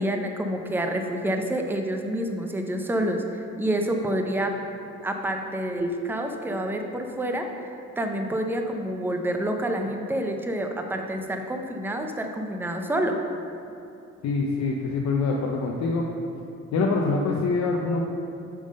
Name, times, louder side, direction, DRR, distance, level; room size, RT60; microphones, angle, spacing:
voice 1, 0.0-4.5 5.0-13.2, right 1 dB, 5° right, 4 dB, 0.6 m, -28 dB
voice 2, 14.2-16.1 16.7-18.0, left 3 dB, 65° left, -2 dB, 0.7 m, -25 dB
8.7 x 3.7 x 5.3 m, 2.7 s
cardioid pair, 90°, 30 cm